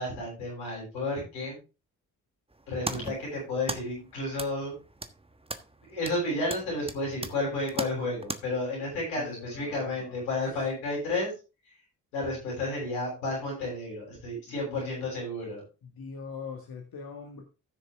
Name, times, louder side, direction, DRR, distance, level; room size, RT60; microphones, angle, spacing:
voice 1, 0.0-1.6 2.7-4.7 5.9-11.3 12.1-15.6, left 2 dB, 85° left, -2 dB, 7.7 m, -32 dB
sound 1, 2.5-8.4, right 2 dB, 15° right, 1.3 m, -39 dB
voice 2, 9.2-10.2 14.7-15.1 16.0-17.4, left 6 dB, 60° left, 2 dB, 2.0 m, -42 dB
15.0 x 6.6 x 3.6 m, 0.30 s
hypercardioid pair, 40°, 41 cm